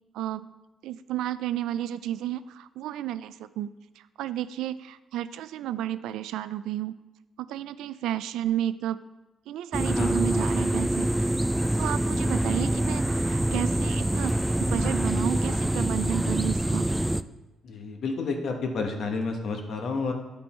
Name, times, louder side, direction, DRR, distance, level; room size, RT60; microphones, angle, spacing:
voice 1, 0.1-0.5 0.8-7.0 7.4-9.0 9.5-11.4 11.8-14.3 14.6-16.9, right 12 dB, 90° right, 15 dB, 0.3 m, -32 dB
sound 1, 9.7-17.2, right 1 dB, 10° right, 0.3 m, -25 dB
voice 2, 9.9-10.2 17.6-20.1, left 4 dB, 65° left, 3 dB, 1.3 m, -30 dB
10.5 x 5.3 x 4.4 m, 1.1 s
cardioid pair, 90°, 0 cm